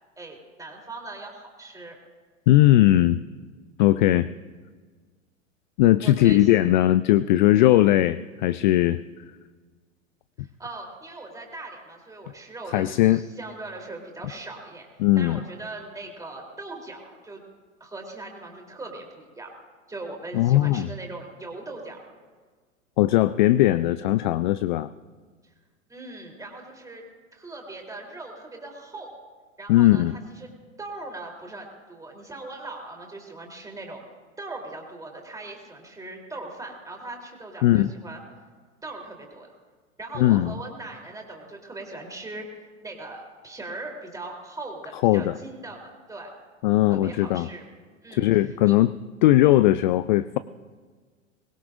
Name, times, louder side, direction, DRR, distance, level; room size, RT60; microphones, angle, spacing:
voice 1, 0.2-2.0 6.0-6.5 10.4-17.4 17.8-19.5 19.9-22.0 25.4-25.5 25.9-27.0 27.3-29.1 29.6-30.0 30.4-30.5 30.8-34.0 34.4-38.2 38.8-39.5 40.0-42.4 42.8-46.3 46.9-47.7 48.0-48.7, right 2 dB, 10° right, 1 dB, 3.3 m, -40 dB
voice 2, 2.5-3.2 3.8-4.3 5.8-9.0 12.7-13.2 15.0-15.4 20.3-20.9 23.0-24.9 29.7-30.2 37.6-37.9 40.2-40.6 45.0-45.3 46.6-47.5 48.1-48.9 49.2-50.4, left 15 dB, 40° left, 15 dB, 0.4 m, -19 dB
23.0 x 20.0 x 2.6 m, 1.5 s
figure-of-eight pair, 100°, 40 cm